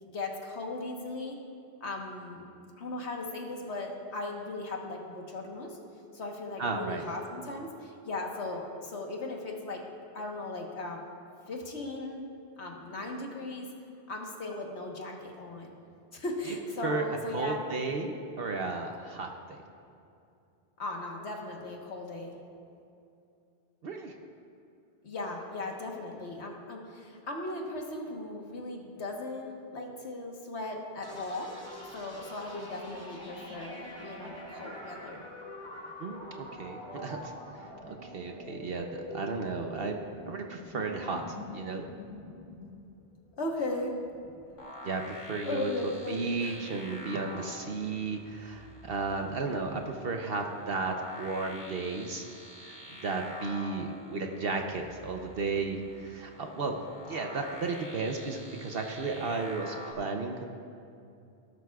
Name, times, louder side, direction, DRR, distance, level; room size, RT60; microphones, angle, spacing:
voice 1, 0.1-1.4 1.8-2.5 2.8-5.8 6.1-9.8 10.1-11.1 11.5-12.2 12.6-13.7 14.1-15.7 16.1-17.6 20.8-22.4 25.0-31.5 31.9-35.2 43.4-44.0 45.4-46.6, left 2 dB, 75° left, 1 dB, 1.6 m, -37 dB
voice 2, 6.6-7.0 16.5-16.6 16.8-17.0 17.3-19.6 23.8-24.1 36.0-40.0 40.2-41.9 44.8-45.7 46.1-52.3 52.6-56.8 57.1-60.5, right 4 dB, 60° right, 3 dB, 0.9 m, -34 dB
sound 1, 31.0-44.6, equal, 15° right, 2.8 m, -45 dB
sound 2, 44.6-59.9, left 1 dB, 25° left, 1.8 m, -47 dB
17.5 x 12.0 x 2.4 m, 2.6 s
omnidirectional pair, 1.2 m